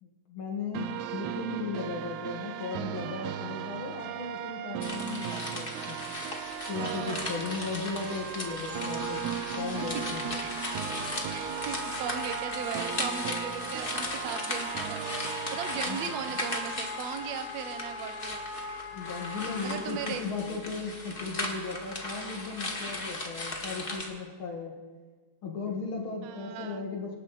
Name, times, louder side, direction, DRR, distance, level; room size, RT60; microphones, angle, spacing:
voice 1, 0.0-6.0 6.7-9.2 9.6-10.4 15.7-16.2 18.9-24.7 25.4-27.2, left 4 dB, 50° left, 0 dB, 2.2 m, -36 dB
sound 1, 0.7-16.7, right 11 dB, 85° right, 2.0 m, -37 dB
sound 2, 4.8-24.1, left 2 dB, 25° left, 1.5 m, -37 dB
voice 2, 6.8-7.3 9.9-10.0 10.4-10.5 11.3-15.1 15.5-18.5 19.6-20.3 26.2-26.9, right 8 dB, 70° right, 9 dB, 2.0 m, -38 dB
Wind instrument woodwind instrument, 8.7-20.0, left 3 dB, 75° left, 4.2 m, -41 dB
26.0 x 12.5 x 4.1 m, 1.4 s
omnidirectional pair, 3.3 m